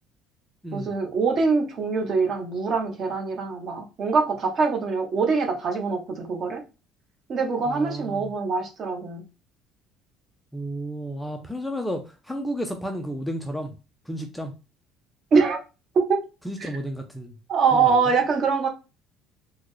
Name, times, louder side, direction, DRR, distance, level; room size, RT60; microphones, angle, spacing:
voice 1, 0.7-6.6 7.3-9.2 15.3-15.6 15.9-16.2 16.6-16.7 17.5-18.7, right 5 dB, 40° right, 4 dB, 0.8 m, -23 dB
voice 2, 7.7-8.3 10.5-13.7 14.1-14.6 16.4-17.3 17.7-18.1, equal, 5° left, 4 dB, 0.4 m, -32 dB
3.8 x 2.1 x 3.1 m, 0.30 s
cardioid pair, 155°, 0 cm